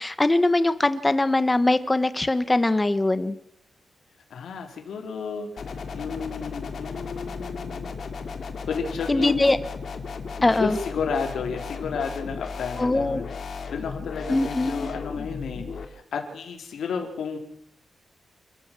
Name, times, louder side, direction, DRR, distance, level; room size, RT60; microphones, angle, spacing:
voice 1, 0.0-3.4 9.1-9.6 10.4-10.8 12.8-13.2 14.3-14.9, left 2 dB, 15° left, 13 dB, 1.2 m, -22 dB
voice 2, 4.3-5.5 5.9-8.0 8.7-9.4 10.5-13.3 13.7-17.4, left 5 dB, 80° left, 4 dB, 4.2 m, -32 dB
sound 1, 5.6-15.9, left 5 dB, 55° left, 2.5 m, -35 dB
29.0 x 14.0 x 7.7 m, 0.75 s
wide cardioid pair, 160°, 0 cm